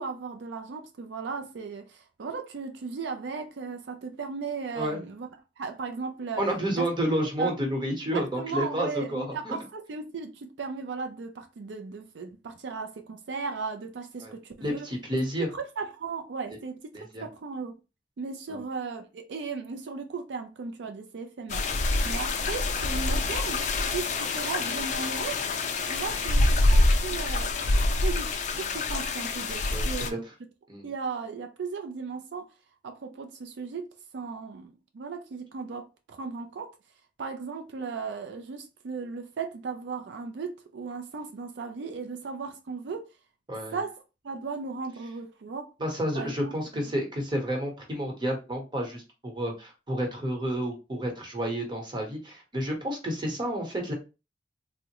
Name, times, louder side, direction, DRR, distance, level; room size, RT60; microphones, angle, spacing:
voice 1, 0.0-5.3 5.6-6.4 6.7-6.9 7.4-7.5 8.0-14.9 15.5-16.8 17.2-17.7 18.2-21.7 22.0-23.6 23.9-25.4 25.8-27.7 28.0-30.2 30.8-32.5 32.8-33.9 34.1-36.7 37.2-43.1 43.7-45.7 46.1-46.5, right 4 dB, 85° right, 0.4 m, -36 dB
voice 2, 6.4-9.6 14.2-14.3 14.6-15.5 16.9-17.3 18.5-18.6 29.7-30.2 30.7-30.9 43.5-43.8 45.8-53.9, equal, 25° right, 0.9 m, -30 dB
sound 1, 21.5-30.1, left 2 dB, 45° left, 0.4 m, -26 dB
3.5 x 2.1 x 2.9 m
head